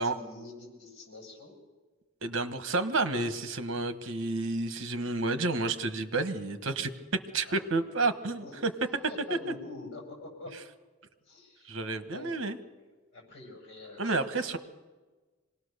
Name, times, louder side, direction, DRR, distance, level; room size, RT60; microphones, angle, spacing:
voice 1, 0.0-1.6 7.4-8.0 8.4-8.6 9.1-10.5 11.2-11.8 12.1-12.4 13.1-14.6, left 2 dB, 55° left, 1 dB, 7.3 m, -46 dB
voice 2, 2.2-6.9 7.3-8.7 11.6-12.6 14.0-14.6, right 3 dB, 60° right, 10 dB, 1.3 m, -30 dB
25.5 x 18.5 x 6.7 m, 1.3 s
head